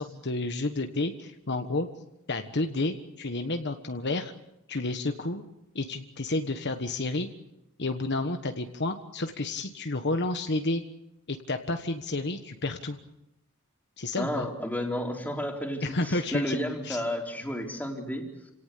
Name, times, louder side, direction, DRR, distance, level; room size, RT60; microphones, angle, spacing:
voice 1, 0.0-1.9 2.3-4.3 4.7-5.4 5.7-7.3 7.8-10.8 11.3-13.0 14.0-14.5 15.8-16.6 16.8-17.0, left 2 dB, 50° left, 6 dB, 1.4 m, -30 dB
voice 2, 14.2-18.3, equal, 5° left, 1 dB, 3.9 m, -32 dB
28.5 x 18.0 x 8.5 m, 0.88 s
head